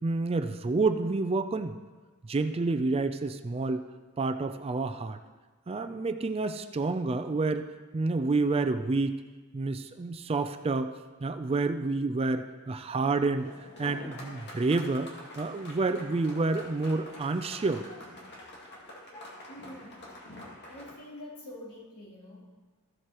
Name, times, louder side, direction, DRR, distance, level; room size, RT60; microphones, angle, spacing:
voice 1, 0.0-1.8 2.3-3.8 4.2-5.2 5.7-9.1 9.5-10.9 11.2-17.8, right 3 dB, 25° right, 9 dB, 0.4 m, -29 dB
sound 1, 13.3-20.9, left 1 dB, 50° left, 2.3 m, -46 dB
voice 2, 19.5-20.1 20.7-22.5, left 1 dB, 80° left, -6 dB, 3.2 m, -46 dB
15.0 x 7.9 x 3.0 m, 1.3 s
head